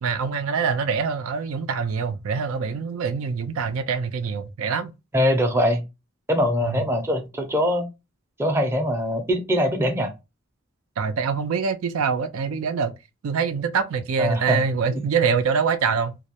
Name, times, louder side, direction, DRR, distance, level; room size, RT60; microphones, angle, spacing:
voice 1, 0.0-4.9 6.6-6.8 11.0-12.9 13.2-16.2, right 5 dB, 90° right, 0.4 m, -24 dB
voice 2, 5.1-5.8 6.3-7.9 8.4-10.1 14.2-14.6 14.9-15.0, equal, 10° right, 0.5 m, -22 dB
2.2 x 2.0 x 2.8 m
head